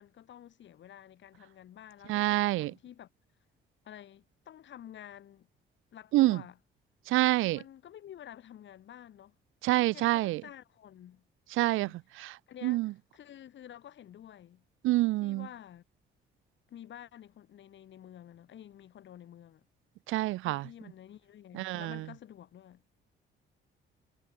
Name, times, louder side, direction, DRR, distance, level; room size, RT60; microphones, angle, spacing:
voice 1, 0.0-3.1 3.8-5.5 5.9-6.6 7.5-9.3 9.8-11.2 11.5-14.6 15.2-15.8 16.7-19.7 20.4-22.8, left 10 dB, 70° left, 4.9 m, -50 dB
voice 2, 2.1-2.7 6.1-6.4 7.1-7.6 9.6-10.4 11.6-11.9 12.2-12.4 12.6-12.9 14.8-15.5 20.1-20.7 21.5-22.0, right 18 dB, 90° right, 0.6 m, -27 dB
cardioid pair, 90°, 20 cm